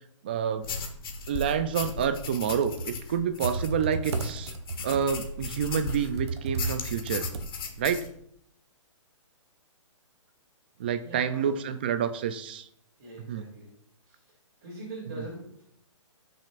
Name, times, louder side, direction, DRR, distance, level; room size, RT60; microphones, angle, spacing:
voice 1, 0.2-0.7 1.3-4.5 4.8-7.3 7.8-8.0 10.8-12.7 13.3-13.4, right 8 dB, 20° right, 10 dB, 0.3 m, -28 dB
sound 1, 0.6-6.2 6.6-8.1, left 4 dB, 45° left, 1.4 m, -36 dB
Computer keyboard, 2.3-7.9, right 3 dB, 55° right, 1.0 m, -35 dB
voice 2, 11.0-11.6 13.0-13.7 14.0-14.3 14.6-15.5, right 1 dB, 35° right, -5 dB, 3.1 m, -42 dB
16.0 x 6.3 x 2.5 m, 0.72 s
hypercardioid pair, 170°, 17 cm